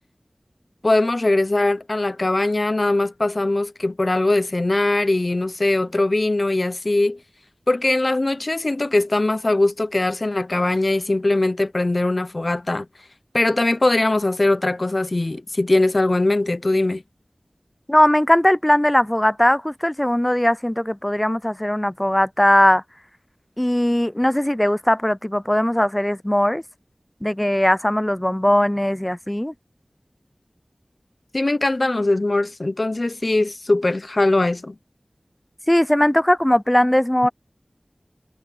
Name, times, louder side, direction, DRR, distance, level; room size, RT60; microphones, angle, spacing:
voice 1, 0.8-7.2 7.7-12.9 13.3-17.0 31.3-34.8, left 2 dB, 50° left, 0.8 m, -21 dB
voice 2, 17.9-22.8 23.6-26.6 27.2-29.5 35.7-37.3, left 1 dB, 15° left, 0.5 m, -19 dB
wide cardioid pair, 55°, 0 cm